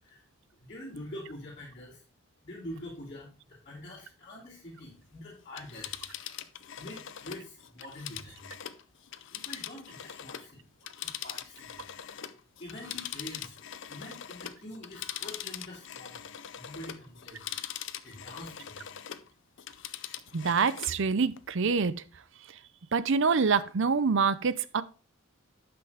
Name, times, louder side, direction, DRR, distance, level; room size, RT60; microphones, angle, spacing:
voice 1, 0.6-2.0 2.4-6.0 6.8-8.5 9.3-10.6 11.0-11.8 12.2-13.5 13.9-16.2 16.5-17.6 18.0-18.9, left 1 dB, 35° left, 3.0 m, -45 dB
Telephone, 5.4-10.5 10.8-19.3 19.6-21.0 21.4-21.5, left 10 dB, 60° left, 0.6 m, -42 dB
voice 2, 20.3-22.0 22.9-24.8, right 5 dB, 60° right, 0.6 m, -26 dB
11.0 x 6.0 x 3.5 m
head